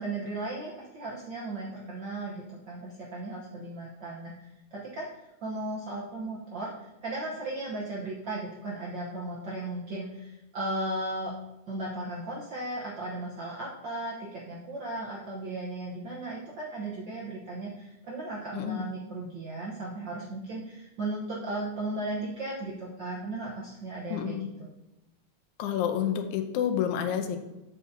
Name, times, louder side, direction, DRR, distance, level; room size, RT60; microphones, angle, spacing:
voice 1, 0.0-11.3 11.7-24.7, right 2 dB, 65° right, -5 dB, 1.1 m, -36 dB
voice 2, 24.1-24.5 25.6-27.4, left 9 dB, 90° left, 6 dB, 2.1 m, -29 dB
7.8 x 7.3 x 2.7 m, 0.98 s
omnidirectional pair, 3.4 m